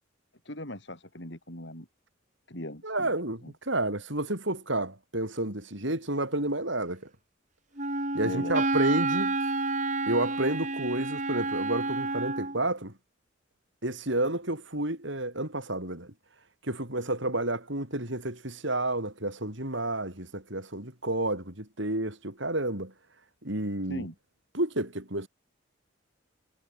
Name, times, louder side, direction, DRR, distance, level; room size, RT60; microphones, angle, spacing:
voice 1, 0.4-1.9 2.5-3.1 3.4-3.5 8.2-8.7 23.9-24.1, left 1 dB, 55° left, 5.6 m, -39 dB
voice 2, 2.8-7.1 8.1-9.4 10.0-12.9 13.8-16.1 16.6-22.9 23.4-24.0 24.5-25.3, right 1 dB, 65° right, 5.9 m, -30 dB
Wind instrument woodwind instrument, 7.8-12.6, right 2 dB, 35° right, 3.9 m, -29 dB
head